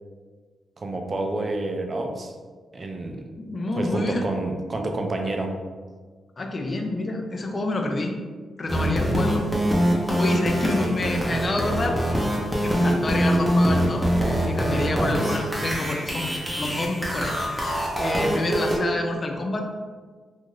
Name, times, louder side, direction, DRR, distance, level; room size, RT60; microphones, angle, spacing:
voice 1, 0.8-2.4 2.7-3.2 3.8-5.5 10.8-10.9 15.0-15.4, right 2 dB, 45° right, 3 dB, 0.4 m, -29 dB
voice 2, 3.3-4.2 6.4-8.1 8.6-9.4 10.2-12.0 12.6-14.0 14.5-19.7, left 2 dB, 40° left, 3 dB, 0.4 m, -28 dB
sound 1, 8.7-18.8, equal, ahead, 0.7 m, -24 dB
2.5 x 2.5 x 3.1 m, 1.5 s
cardioid pair, 70°, 0 cm